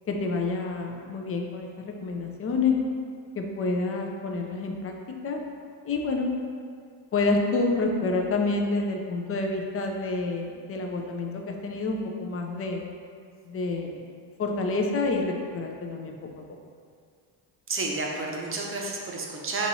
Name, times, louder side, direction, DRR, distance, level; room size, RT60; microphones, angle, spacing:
voice 1, 0.1-2.8 3.3-5.4 5.9-6.3 7.1-12.8 13.5-14.0 14.4-16.2, left 3 dB, 30° left, 2 dB, 0.5 m, -28 dB
voice 2, 17.7-19.7, right 3 dB, 30° right, -1 dB, 0.7 m, -30 dB
5.9 x 2.9 x 2.7 m, 2.2 s
cardioid pair, 105°, 47 cm